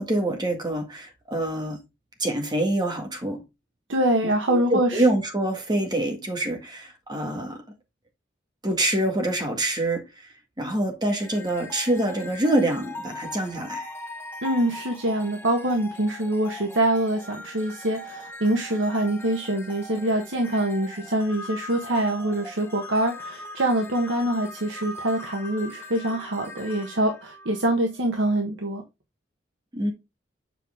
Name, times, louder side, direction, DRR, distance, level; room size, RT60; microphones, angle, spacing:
voice 1, 0.0-1.8 2.2-3.4 4.2-7.6 8.6-10.3 10.6-13.9 29.7-29.9, right 1 dB, 20° right, 1.9 m, -26 dB
voice 2, 3.9-5.0 14.4-28.8, right 1 dB, 80° right, 1.3 m, -25 dB
sound 1, 11.1-28.2, left 2 dB, 15° left, 1.3 m, -41 dB
7.7 x 4.9 x 3.6 m
head